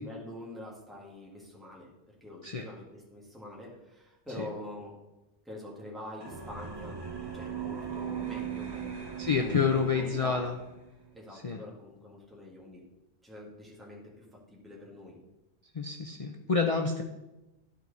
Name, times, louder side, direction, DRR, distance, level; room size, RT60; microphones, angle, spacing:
voice 1, 0.0-4.9 5.5-7.0 7.3-10.5 11.1-12.8 13.2-15.2, left 1 dB, ahead, -4 dB, 1.7 m, -45 dB
sound 1, 6.2-10.9, right 7 dB, 30° right, 0.6 m, -39 dB
voice 2, 9.2-10.5 11.3-11.6 15.7-17.0, left 5 dB, 45° left, 3 dB, 0.5 m, -28 dB
12.0 x 4.7 x 4.0 m, 1.0 s
omnidirectional pair, 1.2 m